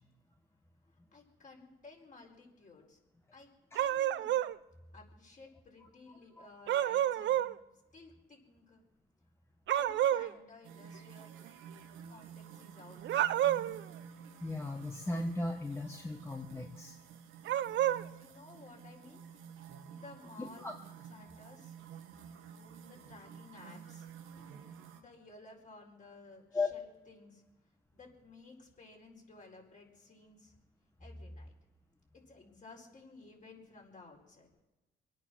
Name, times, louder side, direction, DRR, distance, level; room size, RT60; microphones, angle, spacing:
voice 1, 1.1-3.0 3.3-3.5 3.7-4.4 4.9-7.6 7.9-8.8 9.8-11.4 12.1-13.8 18.2-19.2 19.9-20.7 21.1-21.7 22.9-24.1 25.0-27.4 27.9-30.5 31.0-31.5 32.1-34.5, left 3 dB, 40° left, 0 dB, 4.6 m, -55 dB
sound 1, 3.7-4.5 6.7-7.5 9.7-10.3 13.0-13.8 17.4-18.0, right 12 dB, 65° right, 0.6 m, -29 dB
sound 2, 10.6-25.0, right 7 dB, 85° right, 1.4 m, -51 dB
voice 2, 14.4-16.9 20.4-20.7 26.5-26.7, left 3 dB, 15° left, 2 dB, 1.3 m, -37 dB
24.5 x 9.2 x 6.3 m, 1.1 s
cardioid pair, 90°, 20 cm